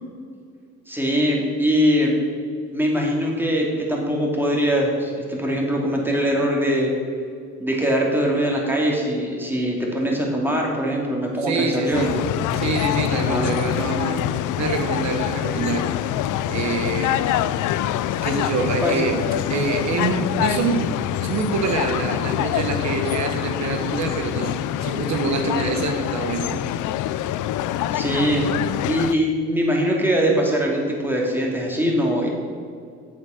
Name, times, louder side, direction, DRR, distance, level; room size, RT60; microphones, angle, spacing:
voice 1, 0.9-2.3 2.7-6.9 7.6-12.2 13.2-13.5 18.8-18.9 27.9-28.5 28.8-32.3, equal, 5° right, -1 dB, 2.5 m, -22 dB
voice 2, 11.4-12.1 12.5-14.2 14.6-15.9 16.5-17.2 17.6-17.8 18.2-20.9 21.2-24.5 24.8-26.7, right 4 dB, 65° right, 4 dB, 1.1 m, -26 dB
sound 1, 11.9-29.1, left 12 dB, 80° left, 0.5 m, -25 dB
7.9 x 7.3 x 6.4 m, 2.3 s
cardioid pair, 90°, 30 cm